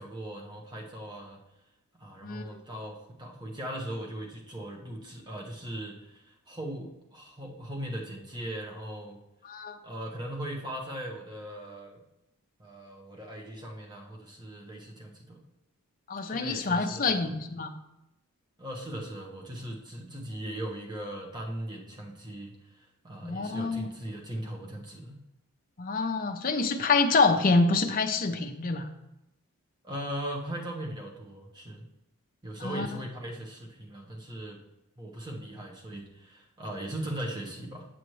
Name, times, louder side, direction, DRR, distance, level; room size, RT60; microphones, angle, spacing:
voice 1, 0.0-1.4 2.0-9.2 9.8-12.0 12.6-15.4 16.3-17.2 18.6-25.2 29.8-31.9 32.4-34.6 35.0-37.9, right 1 dB, 20° right, 0 dB, 1.1 m, -39 dB
voice 2, 2.2-2.6 9.4-9.8 16.1-17.7 23.2-23.9 25.8-28.9 32.6-32.9, left 3 dB, 40° left, 6 dB, 0.6 m, -26 dB
8.0 x 7.8 x 3.1 m, 0.89 s
head